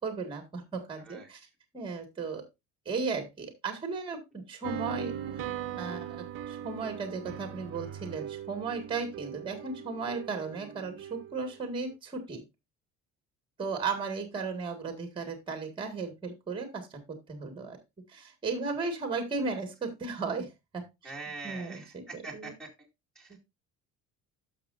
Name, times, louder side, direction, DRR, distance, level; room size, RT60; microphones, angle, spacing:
voice 1, 0.0-1.4 1.7-2.4 2.9-12.4 13.6-17.8 18.1-21.1 21.4-22.5 23.3-23.4, right 4 dB, 15° right, 6 dB, 1.8 m, -36 dB
sound 1, 4.6-11.5, right 9 dB, 40° right, 0.9 m, -40 dB
voice 2, 21.0-22.7 23.1-23.4, right 3 dB, ahead, -4 dB, 2.5 m, -43 dB
11.5 x 6.6 x 2.6 m, 0.22 s
cardioid pair, 175°, 31 cm